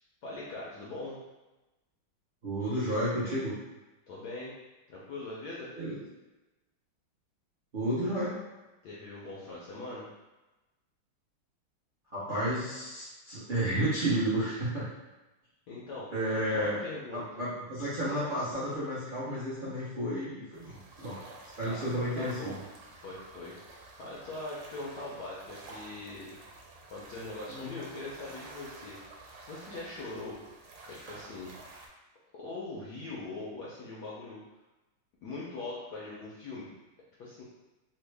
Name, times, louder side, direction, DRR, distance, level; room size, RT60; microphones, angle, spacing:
voice 1, 0.2-1.2 4.1-4.5 4.9-5.7 8.8-10.1 15.7-17.4 21.6-22.6 22.9-26.3 26.9-29.0 29.5-30.4 30.9-31.5 32.3-34.4 35.2-36.7 37.2-37.4, left 2 dB, 75° left, -6 dB, 0.9 m, -41 dB
voice 2, 2.4-3.5 5.8-6.0 7.7-8.4 12.1-14.9 16.1-16.8 17.1-21.2 21.6-22.6 27.5-27.7, right 1 dB, 70° right, -11 dB, 0.5 m, -32 dB
sound 1, 20.5-31.9, right 2 dB, 85° right, 1.5 m, -50 dB
3.5 x 2.1 x 3.3 m, 1.1 s
omnidirectional pair, 2.3 m